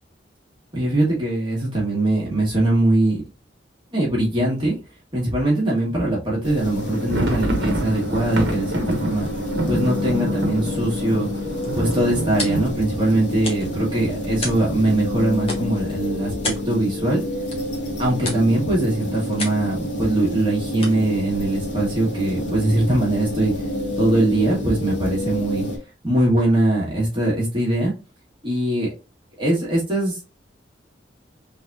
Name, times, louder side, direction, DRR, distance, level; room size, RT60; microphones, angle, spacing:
voice 1, 0.7-3.2 3.9-4.8 5.1-9.3 9.7-11.3 11.7-17.2 18.0-23.5 24.0-25.6 26.0-27.9 28.4-28.9 29.4-30.2, right 1 dB, 25° right, -5 dB, 1.7 m, -21 dB
sound 1, 6.4-25.8, left 1 dB, 75° left, 1.4 m, -28 dB
sound 2, 6.7-14.5 14.8-14.9 15.2-15.4 15.9-16.4, right 1 dB, 65° right, 1.1 m, -28 dB
sound 3, 11.3-22.5, left 2 dB, 30° left, 1.3 m, -37 dB
3.9 x 3.5 x 2.7 m, 0.29 s
head